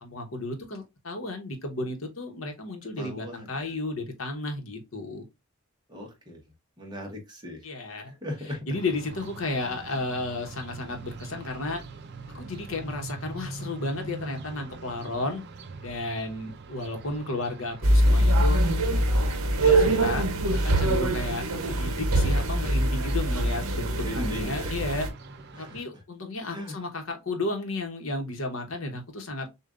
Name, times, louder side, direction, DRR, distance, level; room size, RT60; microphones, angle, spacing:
voice 1, 0.0-5.3 7.6-8.1 8.7-11.8 12.3-15.4 15.8-18.6 19.5-25.1 25.6-29.5, left 2 dB, 65° left, 1.1 m, -33 dB
voice 2, 2.9-3.7 5.9-6.4 6.8-7.7 8.0-8.6 9.6-9.8 24.0-24.7 25.5-26.0 26.5-26.8, left 1 dB, 20° right, 1.1 m, -38 dB
sound 1, 8.7-25.8, right 4 dB, 50° right, 0.5 m, -44 dB
sound 2, 17.8-25.1, right 1 dB, 70° right, 0.8 m, -23 dB
6.7 x 2.5 x 2.5 m
head